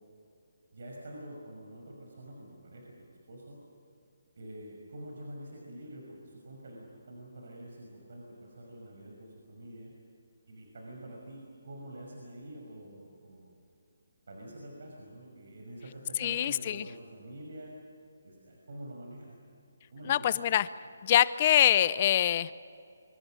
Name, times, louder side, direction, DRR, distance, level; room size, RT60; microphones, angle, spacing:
voice 1, 0.7-3.6 4.4-9.9 10.5-13.5 14.3-17.7 18.2-19.4 19.9-20.4, right 1 dB, 60° right, -1 dB, 5.8 m, -46 dB
voice 2, 16.2-16.9 20.1-20.7 21.0-22.5, left 11 dB, 30° left, 16 dB, 0.6 m, -24 dB
25.5 x 25.5 x 6.4 m, 2.5 s
hypercardioid pair, 170°, 0 cm